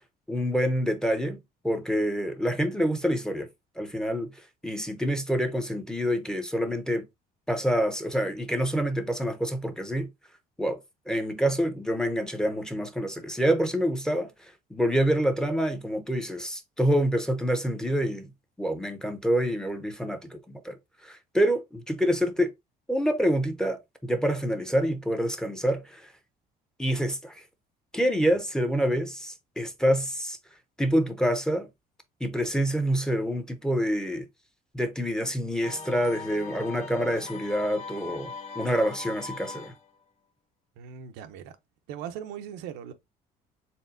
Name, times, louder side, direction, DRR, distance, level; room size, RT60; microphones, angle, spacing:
voice 1, 0.3-1.4 1.6-3.5 3.8-4.3 4.6-7.1 7.5-10.1 10.6-10.8 11.1-14.3 14.7-18.3 18.6-20.8 21.0-22.5 22.9-26.1 26.8-27.4 27.9-30.4 30.8-31.7 32.2-34.2 34.7-39.7, equal, 5° left, 0.6 m, -27 dB
sound 1, 35.6-39.9, left 4 dB, 40° left, 1.0 m, -40 dB
voice 2, 40.8-41.5 41.9-42.9, right 9 dB, 90° right, 0.7 m, -39 dB
4.3 x 3.5 x 2.6 m
cardioid pair, 140°, 17 cm